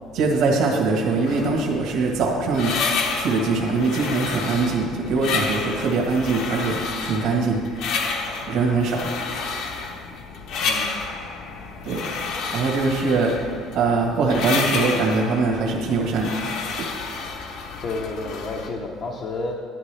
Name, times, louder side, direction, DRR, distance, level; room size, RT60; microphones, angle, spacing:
voice 1, 0.1-2.8 3.1-7.6 8.5-9.1 11.8-12.1 12.5-13.4 13.7-16.4 16.8-16.9, right 4 dB, 60° right, -1 dB, 1.5 m, -22 dB
sound 1, 1.3-18.7, left 4 dB, 65° left, 1.1 m, -30 dB
voice 2, 10.6-10.9 17.8-19.6, left 3 dB, 35° left, 1 dB, 0.7 m, -30 dB
11.0 x 10.5 x 3.4 m, 2.2 s
cardioid pair, 165°, 0 cm